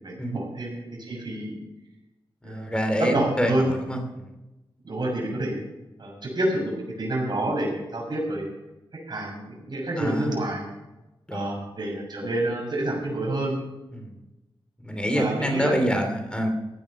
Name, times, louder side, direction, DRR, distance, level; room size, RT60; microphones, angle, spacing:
voice 1, 0.0-1.5 2.4-3.7 4.8-5.5 6.0-8.5 9.1-10.6 11.3-13.5 15.1-15.7, right 1 dB, 50° right, -2 dB, 6.7 m, -28 dB
voice 2, 2.4-4.3 10.0-10.4 11.3-11.7 13.9-14.2 14.8-16.5, equal, 10° left, 4 dB, 2.8 m, -27 dB
15.5 x 9.6 x 6.1 m, 0.99 s
wide cardioid pair, 125°, 9 cm